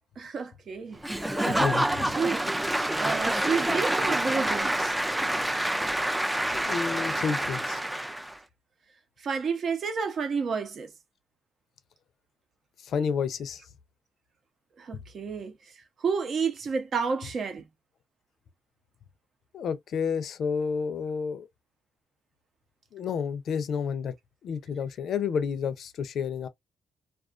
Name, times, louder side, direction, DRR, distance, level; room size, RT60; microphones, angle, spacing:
voice 1, 0.2-1.0 1.4-1.7 2.2-2.4 2.9-5.0 9.2-10.9 14.8-15.6 16.0-17.6, right 5 dB, 55° right, 0.7 m, -30 dB
Applause / Crowd, 1.0-8.4, right 1 dB, 10° right, 0.4 m, -27 dB
voice 2, 1.3-2.1 6.5-7.8 12.8-13.6 14.9-15.0 19.5-21.5 22.9-24.1 24.4-26.5, left 6 dB, 65° left, 0.5 m, -30 dB
2.4 x 2.3 x 2.4 m
cardioid pair, 90°, 0 cm